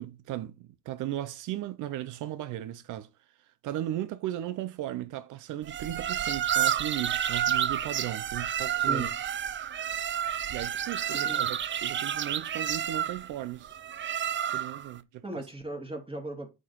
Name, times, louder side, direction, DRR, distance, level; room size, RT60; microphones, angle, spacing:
voice 1, 0.0-3.1 3.6-9.1 10.1-10.2 10.5-13.8 14.5-15.5, right 13 dB, 85° right, 0.6 m, -36 dB
sound 1, 5.7-14.9, right 10 dB, 40° right, 0.5 m, -30 dB
voice 2, 8.8-9.1 11.1-11.5 15.2-16.5, right 1 dB, 15° right, 2.8 m, -37 dB
6.1 x 5.3 x 4.5 m
cardioid pair, 90°, 30 cm